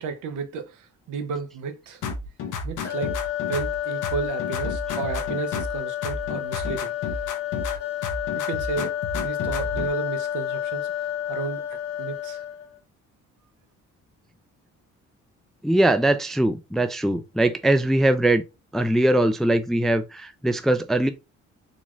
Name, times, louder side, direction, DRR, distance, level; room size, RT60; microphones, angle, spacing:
voice 1, 0.0-2.0 2.6-6.9 8.3-10.9 11.3-12.5, right 5 dB, 80° right, 0.7 m, -33 dB
Clave Gahu otation, 2.0-5.8 6.0-7.8 8.0-9.9, left 4 dB, 85° left, 0.7 m, -31 dB
sound 1, 2.8-12.8, left 11 dB, 50° left, 1.1 m, -30 dB
voice 2, 15.6-18.4 18.7-21.1, right 1 dB, ahead, 0.3 m, -21 dB
3.9 x 2.4 x 3.0 m
cardioid pair, 90°, 30 cm